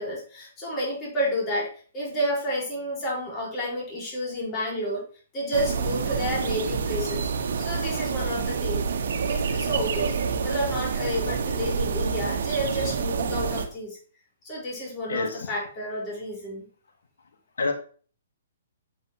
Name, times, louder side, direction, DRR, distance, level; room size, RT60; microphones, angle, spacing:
voice 1, 0.0-5.1 5.3-7.3 7.6-14.0 14.4-16.6, equal, 25° left, -4 dB, 4.7 m, -30 dB
sound 1, 5.5-13.7, right 6 dB, 65° right, 1.3 m, -28 dB
voice 2, 15.1-15.5 17.6-17.7, left 4 dB, 75° left, 5 dB, 1.5 m, -27 dB
8.5 x 7.9 x 3.0 m, 0.41 s
hypercardioid pair, 130°, 0 cm